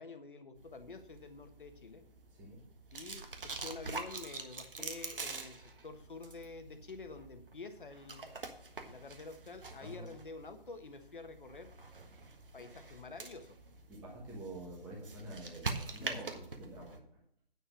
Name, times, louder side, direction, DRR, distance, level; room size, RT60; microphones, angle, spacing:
voice 1, 0.0-2.0 2.9-8.2 8.9-11.7 12.5-13.6, left 3 dB, 60° left, 7 dB, 1.5 m, -48 dB
sound 1, 0.6-17.0, right 3 dB, 65° right, 1.5 m, -46 dB
voice 2, 9.8-10.1 13.9-17.0, right 1 dB, 5° right, -5 dB, 1.2 m, -47 dB
9.6 x 5.8 x 6.3 m, 0.69 s
figure-of-eight pair, 160°, 29 cm